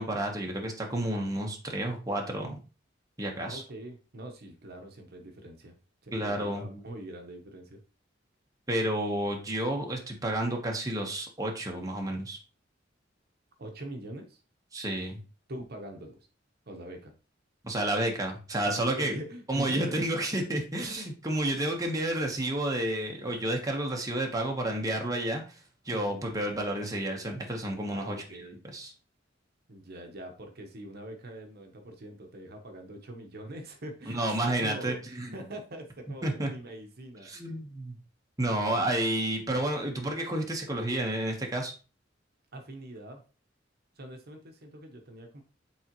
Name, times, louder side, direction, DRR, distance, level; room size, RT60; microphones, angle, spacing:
voice 1, 0.0-2.6 3.2-3.6 6.1-6.7 8.7-12.4 14.7-15.2 17.6-19.1 19.5-25.4 25.8-28.2 28.7-28.9 34.1-35.4 36.2-36.5 37.2-38.0 38.4-41.7, right 1 dB, 20° right, 1 dB, 1.1 m, -30 dB
voice 2, 3.4-5.8 6.0-7.8 13.6-14.4 15.5-16.2 16.7-17.1 18.6-20.1 25.9-26.4 27.9-28.6 29.7-37.3 42.5-43.2 44.0-45.4, right 1 dB, 55° right, 4 dB, 1.0 m, -43 dB
8.6 x 3.6 x 3.0 m, 0.34 s
head